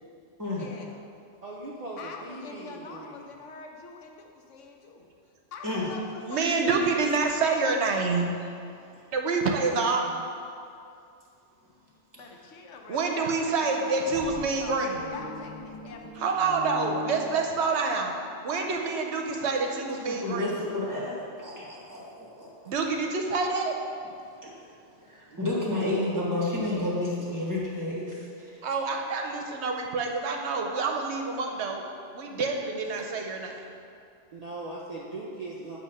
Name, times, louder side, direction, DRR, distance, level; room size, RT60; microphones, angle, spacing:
voice 1, 0.5-1.0 2.0-5.1 5.5-6.9 12.1-14.8 15.1-17.4, left 4 dB, 90° left, 2 dB, 1.1 m, -44 dB
voice 2, 1.4-3.3 25.3-26.9 34.3-35.8, right 2 dB, 45° right, -5 dB, 0.5 m, -40 dB
voice 3, 6.3-8.3 9.1-10.3 12.9-15.0 16.2-18.1 18.4-20.5 22.7-23.7 28.6-31.8 32.1-33.6, right 4 dB, 70° right, 2 dB, 0.9 m, -27 dB
sound 1, 13.8-18.0, left 3 dB, 50° left, 0.6 m, -41 dB
voice 4, 20.1-22.5 24.4-24.5 25.0-28.5, left 2 dB, 15° right, -5 dB, 1.1 m, -31 dB
8.2 x 2.8 x 5.4 m, 2.5 s
omnidirectional pair, 1.2 m